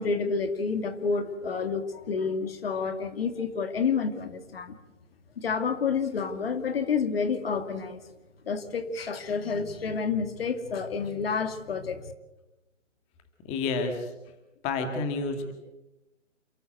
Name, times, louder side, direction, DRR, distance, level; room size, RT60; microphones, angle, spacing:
voice 1, 0.0-4.7 5.4-8.0 8.5-12.1, left 5 dB, 50° left, 9 dB, 2.3 m, -29 dB
voice 2, 13.4-14.1 14.6-15.5, left 3 dB, 15° left, 6 dB, 2.2 m, -29 dB
28.5 x 14.0 x 7.9 m, 1.0 s
hypercardioid pair, 150°, 38 cm